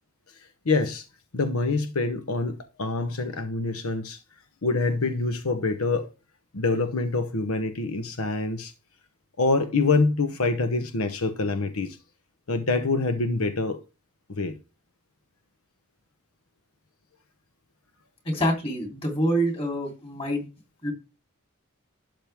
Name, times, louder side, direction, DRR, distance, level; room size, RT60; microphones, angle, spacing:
voice 1, 0.6-1.0 1.3-4.2 4.6-6.1 6.5-8.7 9.4-12.0 12.5-13.8 14.4-14.6, left 3 dB, 85° left, 0.9 m, -25 dB
voice 2, 18.2-20.5 20.8-20.9, equal, 25° left, 3.3 m, -26 dB
12.0 x 7.5 x 3.5 m
head